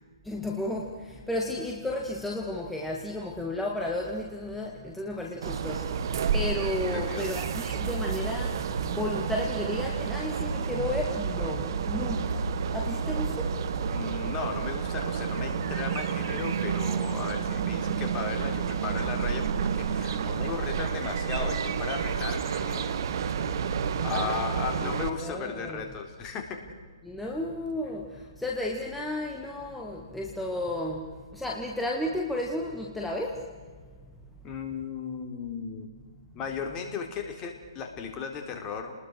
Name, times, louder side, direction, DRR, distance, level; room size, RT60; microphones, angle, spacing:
voice 1, 0.2-13.6 14.1-14.2 24.1-24.4 24.7-24.9 25.2-25.8 27.0-33.5, left 1 dB, 5° left, -1 dB, 2.0 m, -33 dB
sound 1, 5.4-25.1, right 6 dB, 55° right, 1.8 m, -30 dB
voice 2, 6.9-7.3 13.9-23.0 24.0-26.6 34.4-35.9 36.3-38.9, left 6 dB, 25° left, 4 dB, 3.7 m, -36 dB
30.0 x 20.5 x 6.4 m, 1.5 s
hypercardioid pair, 140°, 3 cm